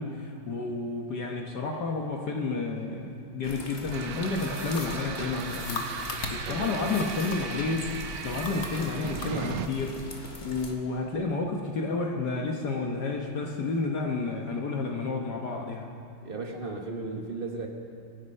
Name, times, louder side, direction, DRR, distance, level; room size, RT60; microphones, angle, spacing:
voice 1, 0.0-5.9 6.3-7.9 8.2-10.1 10.4-15.9, left 3 dB, 55° left, 1 dB, 1.5 m, -31 dB
sound 1, 3.4-10.7, left 2 dB, 25° left, 1.4 m, -43 dB
sound 2, 3.9-9.7, right 7 dB, 80° right, 1.5 m, -38 dB
sound 3, 4.3-7.6 8.0-9.3, left 4 dB, 80° left, 2.2 m, -39 dB
voice 2, 6.4-7.0 16.2-17.7, right 3 dB, 35° right, 2 dB, 1.0 m, -36 dB
25.5 x 10.0 x 5.5 m, 2.5 s
omnidirectional pair, 2.3 m